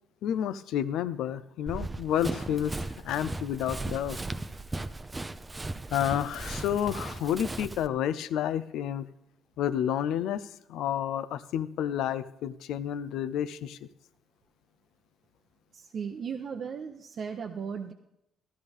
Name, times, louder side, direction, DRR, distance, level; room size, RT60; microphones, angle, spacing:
voice 1, 0.2-2.8 3.0-4.2 5.9-9.1 9.6-13.9, left 10 dB, 85° left, 14 dB, 0.4 m, -30 dB
Run, 1.7-7.9, right 2 dB, 20° right, 0.6 m, -37 dB
voice 2, 15.7-17.9, right 6 dB, 60° right, 3 dB, 0.7 m, -36 dB
13.5 x 12.5 x 3.5 m, 0.85 s
cardioid pair, 90°, 0 cm